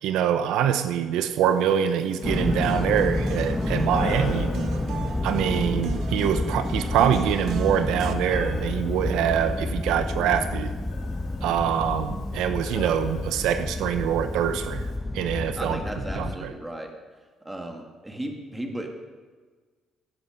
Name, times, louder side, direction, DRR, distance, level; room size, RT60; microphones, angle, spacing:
voice 1, 0.0-4.5 5.2-10.7 11.4-14.8 15.1-15.8 16.2-16.5, right 9 dB, 90° right, 9 dB, 0.8 m, -24 dB
Breathing, 1.5-15.0, left 4 dB, 70° left, 3.4 m, -44 dB
sound 1, 2.2-16.4, left 2 dB, 10° left, 0.6 m, -29 dB
sound 2, 2.2-8.1, right 8 dB, 60° right, 0.9 m, -38 dB
voice 2, 15.6-16.9 17.4-18.9, right 1 dB, 10° right, 3 dB, 1.6 m, -35 dB
15.5 x 8.3 x 5.8 m, 1.4 s
cardioid pair, 150°, 0 cm